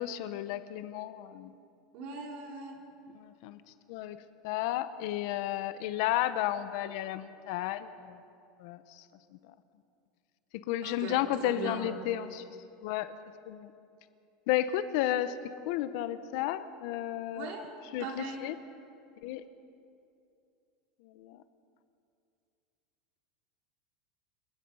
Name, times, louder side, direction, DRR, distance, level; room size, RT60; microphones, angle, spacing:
voice 1, 0.0-1.5 3.1-3.6 3.9-4.2 4.4-8.2 8.6-9.0 9.4-9.5 10.5-12.4 12.8-13.2 13.5-13.7 14.5-15.4 15.7-17.5 17.9-18.5 19.2-19.4 21.0-21.4, left 13 dB, 55° left, 12 dB, 0.9 m, -33 dB
voice 2, 1.9-2.8 10.8-11.8 17.3-17.7 18.0-18.4, right 3 dB, 45° right, 0 dB, 4.1 m, -39 dB
29.5 x 18.0 x 5.6 m, 2.5 s
supercardioid pair, 170°, 3 cm